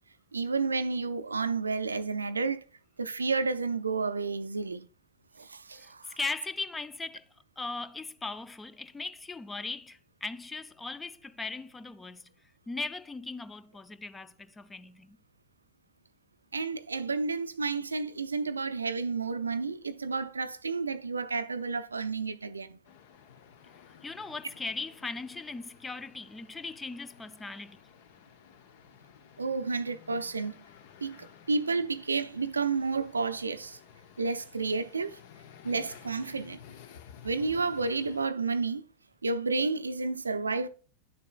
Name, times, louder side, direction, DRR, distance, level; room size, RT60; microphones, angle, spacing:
voice 1, 0.3-2.6 3.0-4.9 5.4-6.2 16.5-22.8 29.4-30.5 31.0-33.8 34.2-35.2 35.6-36.6 37.2-38.9 39.2-40.7, right 4 dB, 75° right, 0.4 m, -31 dB
voice 2, 5.8-7.3 7.6-12.3 12.7-15.2 24.0-27.8, left 3 dB, 10° left, 0.4 m, -38 dB
sound 1, 22.8-38.3, left 9 dB, 50° left, 0.6 m, -54 dB
10.5 x 6.7 x 2.3 m
figure-of-eight pair, 90°, 0 cm